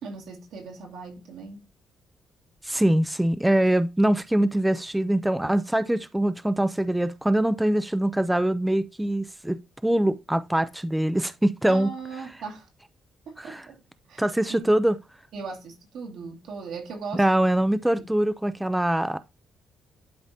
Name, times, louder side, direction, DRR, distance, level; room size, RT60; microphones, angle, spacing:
voice 1, 0.0-1.6 11.7-12.7 13.3-13.8 14.1-14.2 14.5-14.8 15.3-17.2 17.9-18.1, right 4 dB, 80° right, 2.1 m, -38 dB
voice 2, 2.6-11.9 13.4-13.6 14.2-15.0 17.1-19.2, right 1 dB, 5° right, 0.4 m, -23 dB
11.0 x 3.9 x 2.7 m
cardioid pair, 90°, 0 cm